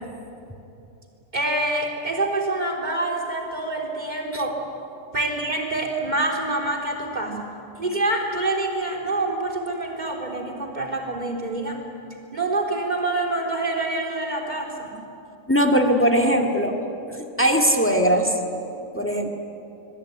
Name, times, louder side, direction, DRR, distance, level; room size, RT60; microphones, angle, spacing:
voice 1, 1.3-4.6 5.1-7.5 7.8-11.8 12.3-15.0, right 2 dB, 35° right, 0 dB, 3.7 m, -26 dB
voice 2, 15.5-16.8 17.1-18.4 18.9-19.3, equal, 10° left, 2 dB, 2.0 m, -20 dB
25.0 x 24.0 x 9.5 m, 2.8 s
omnidirectional pair, 1.3 m